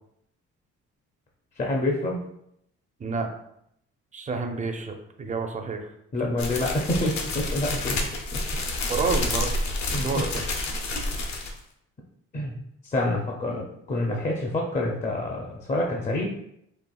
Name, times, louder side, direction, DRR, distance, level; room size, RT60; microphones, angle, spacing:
voice 1, 1.6-2.2 6.1-8.0 8.3-8.4 9.9-10.2 12.3-12.6 12.8-16.3, left 1 dB, 25° left, -1 dB, 0.5 m, -27 dB
voice 2, 4.1-5.9 8.9-9.5 9.9-10.3 10.6-10.7, right 4 dB, 25° right, 5 dB, 0.5 m, -29 dB
sound 1, 6.4-11.6, left 2 dB, 65° left, 0.7 m, -29 dB
4.2 x 2.4 x 2.3 m, 0.75 s
cardioid pair, 90°, 30 cm